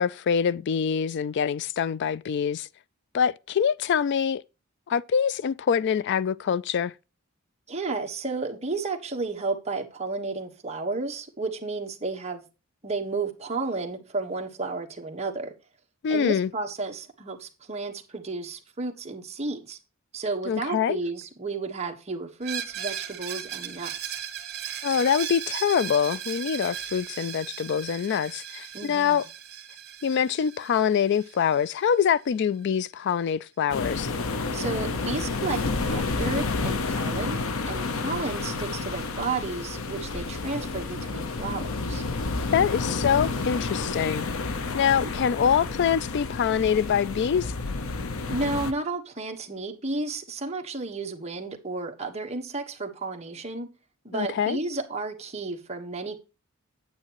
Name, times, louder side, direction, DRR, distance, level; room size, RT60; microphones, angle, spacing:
voice 1, 0.0-2.7 3.1-4.4 4.9-6.9 16.0-16.5 20.5-21.0 24.8-29.2 30.0-34.1 42.5-44.3 44.7-47.5 54.1-54.6, left 7 dB, 55° left, 0.3 m, -25 dB
voice 2, 7.7-12.4 12.8-15.5 16.1-19.8 20.1-24.2 28.7-29.2 34.5-42.0 45.0-45.1 48.3-53.7 54.0-56.2, right 3 dB, 30° right, 1.3 m, -32 dB
Screech, 22.4-32.1, right 9 dB, 55° right, 1.5 m, -37 dB
sound 1, 33.7-48.7, left 3 dB, 90° left, 0.8 m, -30 dB
8.9 x 8.3 x 3.0 m
head